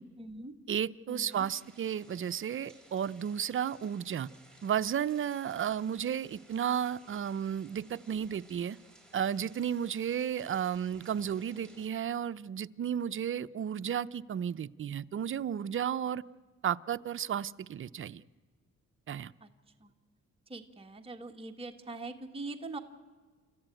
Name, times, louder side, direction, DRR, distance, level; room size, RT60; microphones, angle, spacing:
voice 1, 0.2-0.5 1.1-1.5 19.4-19.5 19.8-19.9 20.5-22.8, right 2 dB, 20° right, 1.6 m, -42 dB
voice 2, 0.7-4.3 4.6-8.8 9.1-16.2 16.6-18.2 19.1-19.3, right 9 dB, 45° right, 0.6 m, -33 dB
sound 1, 1.3-11.9, right 1 dB, 5° left, 4.9 m, -59 dB
29.5 x 14.0 x 9.1 m
cardioid pair, 90°, 30 cm